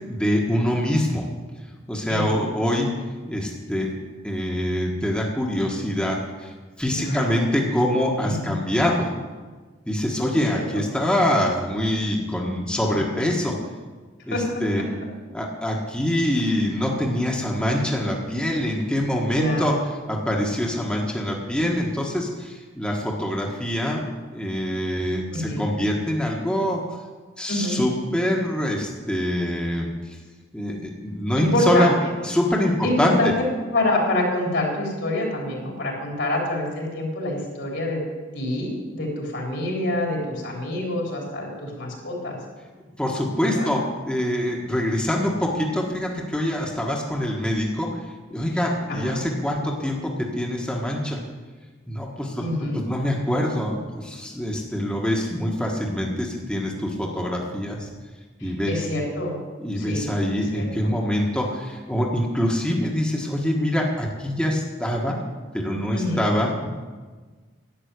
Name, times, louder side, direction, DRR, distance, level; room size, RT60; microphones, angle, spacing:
voice 1, 0.1-1.2 1.9-2.9 3.3-3.9 4.2-6.5 6.8-9.1 9.9-13.5 14.3-14.9 15.3-19.7 20.1-24.0 24.3-26.8 27.4-30.2 30.5-31.9 32.2-33.3 43.0-47.9 48.3-51.2 51.9-57.9 58.4-58.8 59.6-65.2 65.5-66.7, left 1 dB, 5° left, -2 dB, 1.5 m, -24 dB
voice 2, 2.1-2.4 6.9-7.5 8.2-8.6 10.5-10.8 14.3-14.9 16.5-16.6 19.3-19.8 25.3-25.7 27.5-27.8 31.4-31.9 32.8-33.3 33.7-38.0 38.3-42.4 43.4-43.7 48.9-49.2 52.4-52.8 58.4-59.4 59.8-60.9 65.9-66.2, left 1 dB, 65° left, -1 dB, 3.7 m, -27 dB
11.5 x 7.5 x 9.6 m, 1.4 s
head